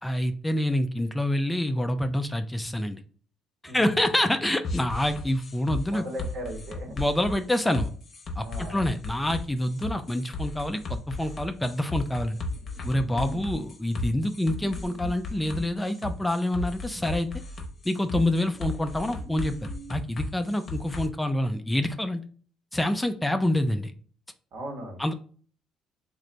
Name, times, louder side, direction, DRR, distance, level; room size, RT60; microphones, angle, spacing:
voice 1, 0.0-3.0 3.6-6.0 7.0-7.9 8.4-12.4 12.9-17.3 17.8-22.2 22.7-23.9 25.0-25.1, left 1 dB, 10° left, 8 dB, 0.4 m, -27 dB
voice 2, 3.7-4.0 5.9-7.1 8.4-8.9 13.1-13.4 24.5-25.0, equal, 70° right, 1 dB, 1.4 m, -37 dB
sound 1, 4.6-21.1, left 2 dB, 45° left, 0.8 m, -35 dB
sound 2, 12.5-13.8 14.1-16.4 16.9-17.3 18.1-19.9, right 3 dB, 35° right, 0.7 m, -47 dB
3.2 x 2.6 x 3.8 m, 0.43 s
cardioid pair, 95°, 0 cm